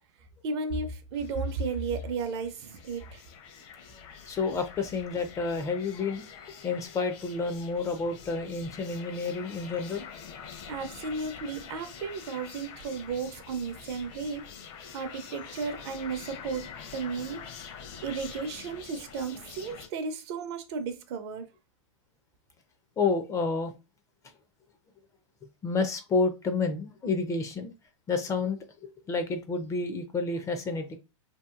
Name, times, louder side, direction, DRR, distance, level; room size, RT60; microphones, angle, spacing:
voice 1, 0.4-3.2 10.7-14.4 14.9-17.4 18.0-21.5, right 4 dB, 55° right, 0.6 m, -34 dB
sound 1, 1.1-19.9, left 7 dB, 55° left, 0.7 m, -46 dB
voice 2, 4.3-10.0 23.0-23.7 25.6-27.7 28.1-31.0, left 4 dB, 20° left, 0.4 m, -30 dB
2.7 x 2.5 x 2.4 m
hypercardioid pair, 120°, 17 cm